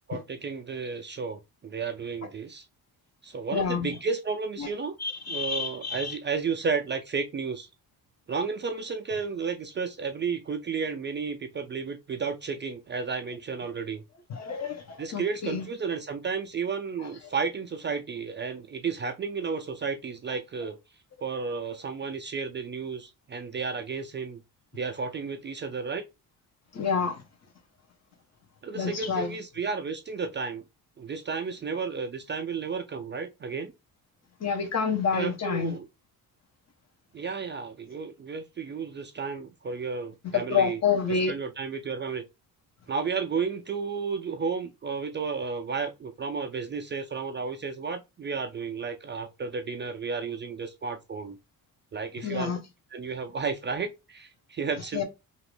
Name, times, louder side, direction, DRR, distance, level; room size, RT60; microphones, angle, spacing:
voice 1, 0.1-2.6 3.2-4.9 5.3-7.7 8.3-14.0 15.0-20.8 21.2-24.4 24.7-26.0 28.6-30.6 31.0-33.7 35.1-35.9 37.1-40.8 41.1-42.2 42.9-51.4 51.9-52.6 52.9-55.0, right 5 dB, 30° right, 0.4 m, -32 dB
voice 2, 3.5-3.9 4.6-4.7 5.0-6.2 14.3-15.7 17.0-17.1 26.7-27.1 28.7-29.3 34.4-35.8 40.3-41.3 52.2-52.6 54.9-55.0, left 6 dB, 45° left, 1.0 m, -28 dB
2.9 x 2.5 x 3.2 m
cardioid pair, 95°, 38 cm